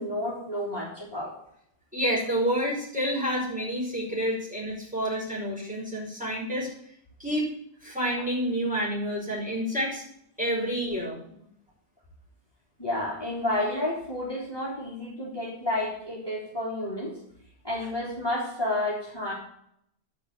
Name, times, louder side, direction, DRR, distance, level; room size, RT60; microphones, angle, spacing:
voice 1, 0.0-1.3 12.8-17.1 17.6-19.3, left 1 dB, 25° left, -7 dB, 3.8 m, -30 dB
voice 2, 1.9-6.7 7.2-7.5 7.8-10.0 10.4-11.2, equal, 5° right, -4 dB, 5.2 m, -28 dB
11.5 x 5.0 x 8.3 m, 0.70 s
omnidirectional pair, 1.1 m